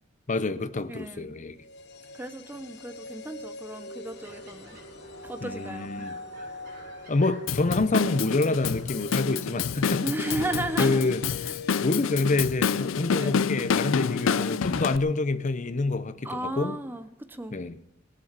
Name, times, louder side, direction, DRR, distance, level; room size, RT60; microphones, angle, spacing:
voice 1, 0.3-1.6 5.4-6.2 7.1-10.0 10.8-11.2 11.8-16.8 17.5-17.8, left 3 dB, 40° left, 0.7 m, -27 dB
voice 2, 0.9-1.3 2.1-4.8 5.2-6.1 10.0-11.1 11.4-11.5 13.1-13.3 16.2-17.6, right 1 dB, 10° right, 0.7 m, -35 dB
sound 1, 1.5-13.7 13.9-14.0, left 2 dB, 60° left, 1.0 m, -44 dB
sound 2, 4.1-10.7, equal, 50° right, 6.4 m, -52 dB
Drum kit / Drum, 7.5-15.0, left 6 dB, 80° left, 0.4 m, -28 dB
20.0 x 7.0 x 7.4 m
head